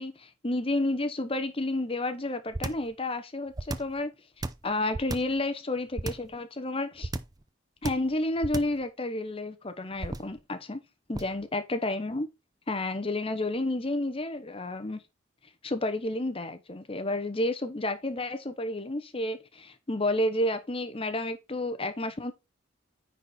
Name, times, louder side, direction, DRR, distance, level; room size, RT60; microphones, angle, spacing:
voice 1, 0.0-4.1 4.6-7.1 7.8-10.8 11.1-12.3 12.7-15.0 15.6-22.3, left 1 dB, 30° left, 0.8 m, -31 dB
sound 1, 2.5-2.9 3.5-4.0 4.4-5.4 6.0-6.3 7.0-7.4 7.8-8.1 8.4-8.8 10.0-10.4 11.1-11.4, right 2 dB, 20° right, 0.5 m, -33 dB
9.8 x 4.3 x 4.2 m
head